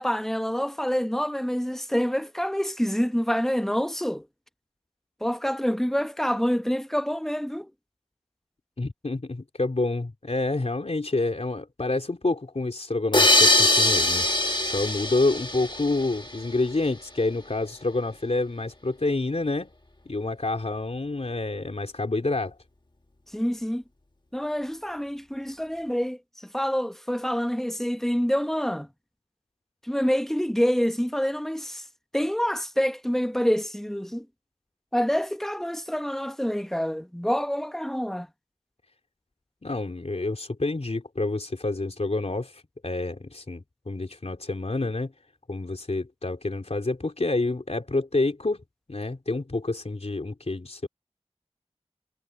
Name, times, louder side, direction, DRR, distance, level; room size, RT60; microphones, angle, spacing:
voice 1, 0.0-4.2 5.2-7.7 23.3-23.8 24.3-28.9 29.8-31.8 32.1-34.3 34.9-38.3, equal, 5° left, 0.9 m, -27 dB
voice 2, 8.8-14.3 14.6-19.7 20.1-22.6 39.6-45.1 45.5-48.6 48.9-50.9, left 2 dB, 70° left, 3.8 m, -28 dB
sound 1, 13.1-16.5, left 1 dB, 45° left, 1.6 m, -22 dB
wide cardioid pair, 50°, 11 cm